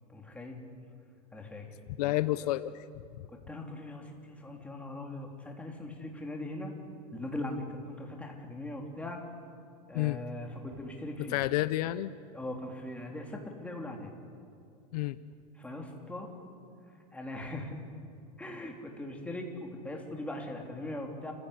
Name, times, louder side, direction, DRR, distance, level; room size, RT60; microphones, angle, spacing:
voice 1, 0.1-0.6 1.3-1.7 2.0-2.2 3.3-6.7 7.1-9.2 9.9-11.4 12.3-14.1 15.6-16.3 17.1-17.8 18.4-21.3, left 1 dB, 5° left, 1 dB, 3.5 m, -40 dB
voice 2, 2.0-2.8 9.9-10.2 11.3-12.1 14.9-15.2, left 17 dB, 75° left, 15 dB, 0.7 m, -29 dB
29.5 x 16.0 x 8.4 m, 2.4 s
supercardioid pair, 125°, 20 cm